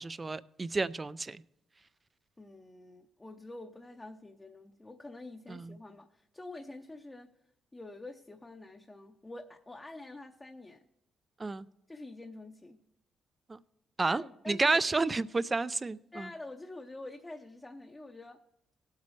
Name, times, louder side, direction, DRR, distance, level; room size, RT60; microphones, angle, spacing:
voice 1, 0.0-1.4 5.5-5.8 11.4-11.7 13.5-13.6 14.0-16.3, right 3 dB, 25° right, 0.4 m, -31 dB
voice 2, 2.4-7.3 7.7-10.8 11.9-12.8 14.1-14.8 16.1-18.4, left 2 dB, 20° left, 0.7 m, -47 dB
18.0 x 8.3 x 3.2 m
cardioid pair, 90°, 0 cm